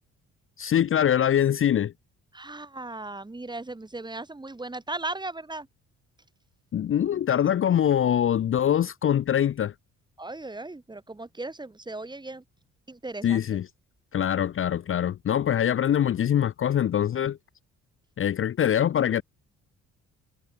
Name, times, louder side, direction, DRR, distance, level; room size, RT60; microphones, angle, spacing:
voice 1, 0.6-1.9 6.7-9.7 13.2-13.7 14.1-17.4 18.2-19.2, left 10 dB, 45° left, 0.6 m, -23 dB
voice 2, 2.3-5.7 10.2-12.4 12.9-13.4, right 2 dB, 15° right, 2.5 m, -37 dB
cardioid pair, 90°, 30 cm